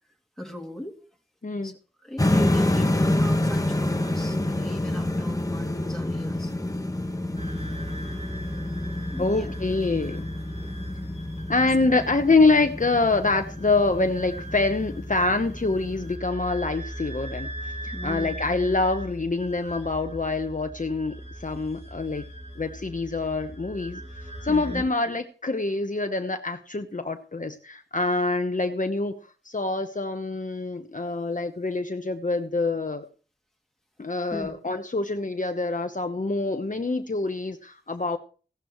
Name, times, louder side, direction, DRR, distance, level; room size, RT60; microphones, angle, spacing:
voice 1, 0.4-1.0 1.6-1.7 2.0-6.5 9.1-9.5 10.6-10.7 17.9-18.4 24.5-24.8 34.3-34.6, equal, ahead, 2 dB, 2.5 m, -37 dB
voice 2, 1.4-1.7 8.4-8.8 9.2-10.3 11.5-17.5 17.8-22.2 22.6-24.0 24.4-29.1 29.4-33.1 34.0-38.2, left 3 dB, 45° left, 6 dB, 1.0 m, -25 dB
sound 1, 2.2-16.2, left 1 dB, 20° left, 1.2 m, -28 dB
sound 2, 7.4-24.8, equal, 35° right, 4.5 m, -38 dB
16.0 x 11.5 x 3.1 m, 0.38 s
wide cardioid pair, 50°, 18 cm